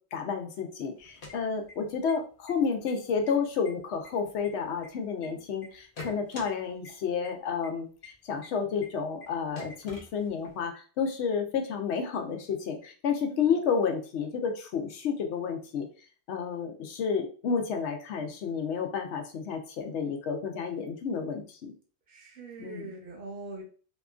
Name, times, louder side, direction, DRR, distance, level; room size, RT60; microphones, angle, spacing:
voice 1, 0.1-15.9 16.3-21.7 22.6-22.9, left 6 dB, 85° left, 5 dB, 0.9 m, -31 dB
sound 1, 1.0-2.1 2.4-2.5 2.9-3.3 3.6-5.3 5.6-6.5 6.8-6.9 7.2-7.3 7.6-7.7 8.0-8.1 8.4-8.5 8.8-8.9 9.2-9.3 9.5-10.6, left 3 dB, 55° left, 0.9 m, -44 dB
voice 2, 13.3-13.6 22.1-23.6, right 3 dB, 55° right, -1 dB, 0.9 m, -43 dB
2.8 x 2.4 x 2.3 m, 0.39 s
omnidirectional pair, 1.1 m